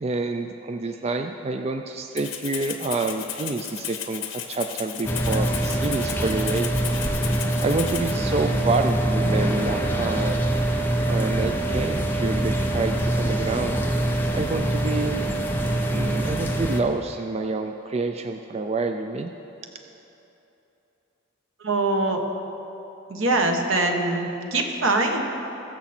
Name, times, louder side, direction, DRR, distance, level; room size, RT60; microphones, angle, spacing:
voice 1, 0.0-6.7 7.6-10.4 11.1-13.8 14.3-15.2 15.9-19.3, right 3 dB, 30° right, 5 dB, 0.4 m, -28 dB
Rattle (instrument), 2.2-8.2, left 10 dB, 80° left, 1.0 m, -34 dB
sound 1, 5.0-16.8, right 1 dB, 10° left, 0.7 m, -24 dB
voice 2, 21.6-22.2 23.1-25.2, right 2 dB, 80° right, 3 dB, 1.3 m, -23 dB
21.0 x 7.1 x 4.3 m, 3.0 s
head